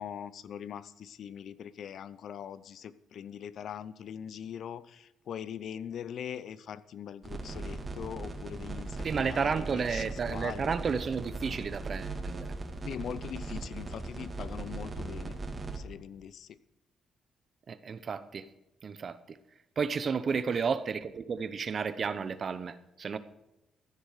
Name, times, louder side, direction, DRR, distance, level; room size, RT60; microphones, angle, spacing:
voice 1, 0.0-10.7 12.8-15.4 15.7-16.6 20.3-20.7, left 9 dB, 65° left, 17 dB, 0.7 m, -42 dB
sound 1, 7.2-15.8, right 3 dB, 25° right, 2.3 m, -39 dB
voice 2, 9.0-12.5 17.7-18.5 18.8-19.4 19.8-23.2, right 6 dB, 45° right, 14 dB, 0.9 m, -32 dB
15.0 x 9.9 x 5.0 m, 0.91 s
cardioid pair, 90°, 0 cm